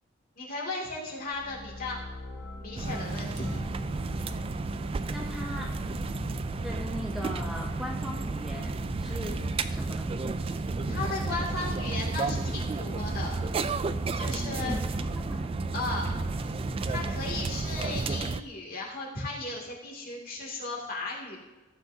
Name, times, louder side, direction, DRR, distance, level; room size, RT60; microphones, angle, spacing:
voice 1, 0.4-2.0 2.6-3.6 10.5-13.4 14.2-14.8 15.7-16.1 16.4-16.6 16.9-21.4, left 2 dB, 45° left, -3 dB, 2.6 m, -36 dB
sound 1, 1.3-17.7, left 2 dB, 85° left, 3.6 m, -42 dB
sound 2, 2.8-18.4, right 3 dB, 30° right, 0.3 m, -32 dB
voice 2, 5.1-5.8 6.5-10.1 14.6-15.5, equal, ahead, 0 dB, 0.7 m, -39 dB
15.0 x 8.2 x 2.8 m, 1.2 s
head